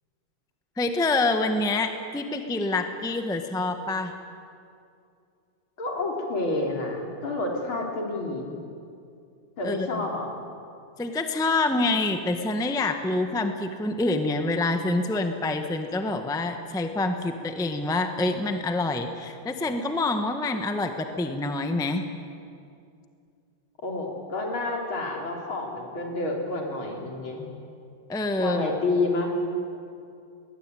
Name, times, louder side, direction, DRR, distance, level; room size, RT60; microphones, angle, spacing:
voice 1, 0.8-4.1 9.6-10.0 11.0-22.0 28.1-28.6, left 2 dB, ahead, 6 dB, 0.9 m, -26 dB
voice 2, 5.8-8.6 9.6-10.3 23.8-27.5 28.4-29.4, left 2 dB, 70° left, 1 dB, 4.1 m, -29 dB
21.5 x 20.0 x 9.2 m, 2.5 s
omnidirectional pair, 2.3 m